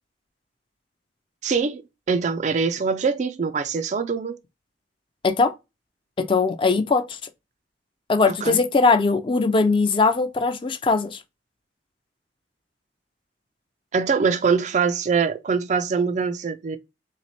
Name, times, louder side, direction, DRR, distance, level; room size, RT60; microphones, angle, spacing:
voice 1, 1.4-1.8 2.1-4.4 8.3-8.6 13.9-16.8, right 5 dB, 40° right, 0.3 m, -23 dB
voice 2, 6.2-7.2 8.1-11.2, left 4 dB, 25° left, 0.4 m, -20 dB
3.3 x 3.0 x 4.2 m
head